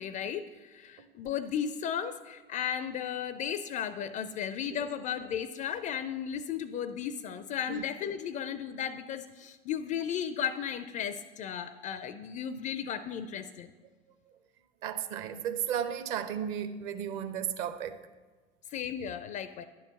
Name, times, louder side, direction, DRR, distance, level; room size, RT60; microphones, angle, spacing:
voice 1, 0.0-13.7 18.7-19.6, left 8 dB, 25° left, 0.4 m, -35 dB
voice 2, 14.8-18.0, right 9 dB, 45° right, 0.8 m, -34 dB
10.5 x 4.7 x 6.8 m
figure-of-eight pair, 80°, 30 cm